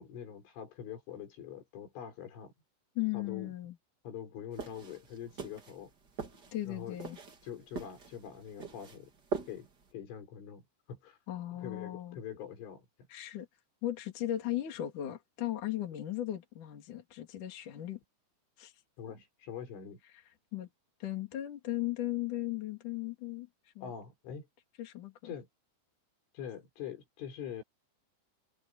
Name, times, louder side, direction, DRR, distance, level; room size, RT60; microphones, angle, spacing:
voice 1, 0.0-2.5 3.1-3.5 4.1-5.9 6.7-7.0 7.4-9.1 9.5-9.7 9.9-11.2 11.6-12.9 19.0-20.0 23.8-24.5 25.2-25.5 26.4-27.6, left 8 dB, 80° left, 7.0 m, -44 dB
voice 2, 3.0-3.8 6.5-7.2 11.3-12.2 13.1-13.5 13.8-18.0 18.6-18.7 20.1-20.2 20.5-20.7 21.0-23.5 23.8-23.9 24.8-25.1, left 14 dB, 45° left, 4.1 m, -37 dB
sound 1, 4.5-9.9, right 4 dB, 35° right, 1.7 m, -43 dB
omnidirectional pair, 5.5 m